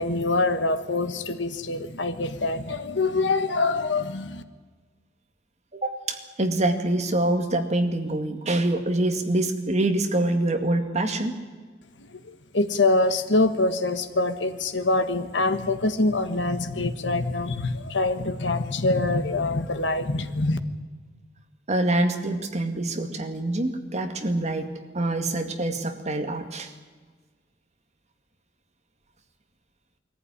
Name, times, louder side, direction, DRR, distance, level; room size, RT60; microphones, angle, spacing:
voice 1, 0.0-4.4 12.3-20.6, left 2 dB, 70° left, 9 dB, 1.4 m, -25 dB
voice 2, 5.7-11.3 21.7-24.7 24.9-26.7, right 1 dB, 40° right, 5 dB, 2.2 m, -25 dB
21.5 x 14.5 x 9.8 m, 1.4 s
head